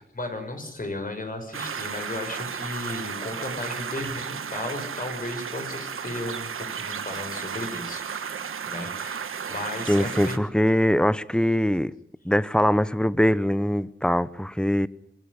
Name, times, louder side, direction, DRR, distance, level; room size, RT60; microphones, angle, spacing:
voice 1, 0.1-10.4, left 2 dB, 40° left, 6.3 m, -35 dB
sound 1, 1.5-10.4, right 7 dB, 90° right, 1.3 m, -34 dB
voice 2, 9.9-11.9 12.2-14.9, equal, 5° left, 0.9 m, -22 dB
24.5 x 16.5 x 9.9 m
wide cardioid pair, 75°, 21 cm